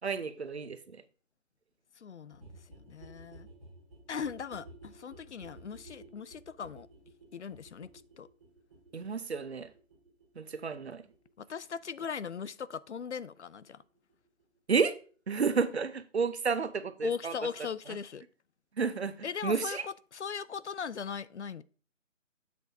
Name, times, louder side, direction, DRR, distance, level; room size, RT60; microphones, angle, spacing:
voice 1, 0.0-1.0 8.9-9.7 10.4-11.0 14.7-15.0 15.3-17.3 18.8-19.1 19.4-19.8, right 5 dB, 55° right, 0.7 m, -31 dB
voice 2, 2.0-3.5 4.1-6.9 7.3-7.9 8.2-8.3 11.4-13.8 17.0-18.2 19.2-21.6, left 6 dB, 65° left, 0.5 m, -39 dB
sound 1, 2.3-13.8 14.1-14.2 14.4-14.5 14.7-14.8 15.0-15.1 15.3-15.4 15.6-15.7, right 2 dB, 10° right, 1.9 m, -55 dB
7.7 x 7.1 x 2.6 m
hypercardioid pair, 170°, 39 cm